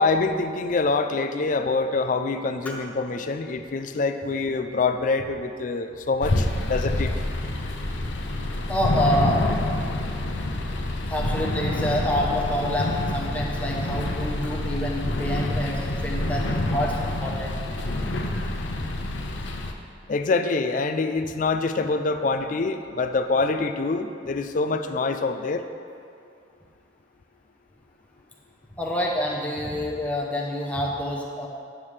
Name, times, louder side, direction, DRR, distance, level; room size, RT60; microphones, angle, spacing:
voice 1, 0.0-7.1 20.1-25.6, left 3 dB, 45° left, 8 dB, 0.4 m, -25 dB
sound 1, 6.2-19.7, left 1 dB, 85° left, 0.7 m, -27 dB
voice 2, 8.7-9.4 11.1-17.5 28.8-31.5, left 1 dB, 10° left, -3 dB, 0.8 m, -27 dB
9.1 x 7.2 x 3.3 m, 2.4 s
head